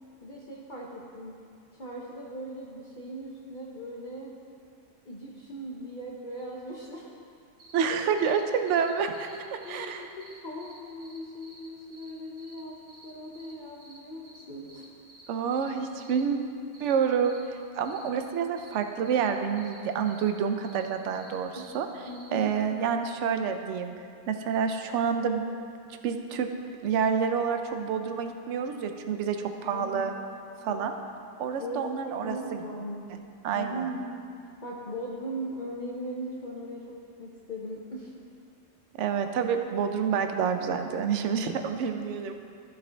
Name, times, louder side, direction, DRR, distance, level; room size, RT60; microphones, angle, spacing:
voice 1, 0.2-1.4 1.7-4.4 5.0-7.1 7.9-8.0 9.3-14.9 21.5-21.7 22.0-22.6 29.6-30.2 30.7-31.0 31.6-33.1 33.5-34.2 34.6-38.1, equal, 45° left, -4 dB, 0.9 m, -39 dB
sound 1, 7.6-7.8 8.2-8.4 8.7-9.8 10.2-12.1 12.4-12.6 12.9-13.5 13.8-14.0 14.2-14.4 14.7-15.7 16.0-16.2 16.7-16.9 17.2-17.4 17.8-18.1 18.6-18.7 19.0-19.3 19.6-19.8 20.1-20.3 20.6-21.8 22.0-22.3, right 1 dB, 50° right, 1.7 m, -52 dB
voice 2, 7.7-9.3 9.7-10.0 15.3-16.4 16.8-21.9 22.3-23.9 24.3-25.4 26.0-26.5 26.8-30.1 30.6-30.9 31.4-32.6 33.1-33.2 33.4-33.9 39.0-42.3, right 7 dB, 70° right, 6 dB, 0.9 m, -28 dB
14.0 x 5.2 x 3.4 m, 2.4 s
omnidirectional pair, 1.4 m